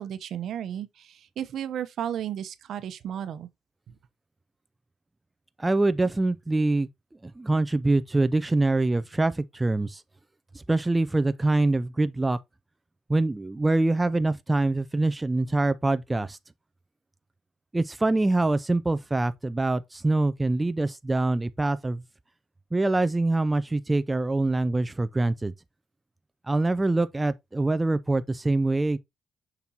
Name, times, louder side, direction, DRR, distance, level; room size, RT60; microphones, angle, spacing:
voice 1, 0.0-3.5, right 10 dB, 70° right, 0.9 m, -34 dB
voice 2, 5.6-6.9 7.2-10.0 10.5-12.4 13.1-16.4 17.7-22.0 22.7-25.5 26.5-29.0, right 2 dB, 15° right, 0.5 m, -24 dB
6.9 x 6.1 x 2.9 m
cardioid pair, 90°, 0 cm